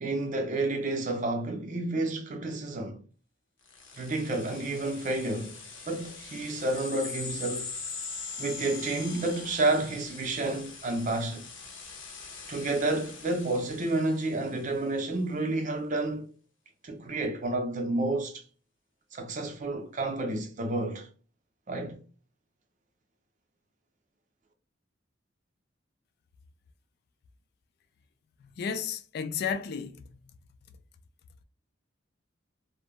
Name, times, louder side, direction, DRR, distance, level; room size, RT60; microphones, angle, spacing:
voice 1, 0.0-3.0 4.0-5.6 5.9-7.7 8.4-11.5 12.5-16.3 16.8-18.4 19.1-21.1 21.7-22.0, right 2 dB, 40° right, 0.5 m, -30 dB
sound 1, 3.7-14.8, left 5 dB, 75° left, 0.7 m, -42 dB
voice 2, 28.4-30.3, left 6 dB, 55° left, 0.3 m, -33 dB
2.1 x 2.0 x 3.4 m
head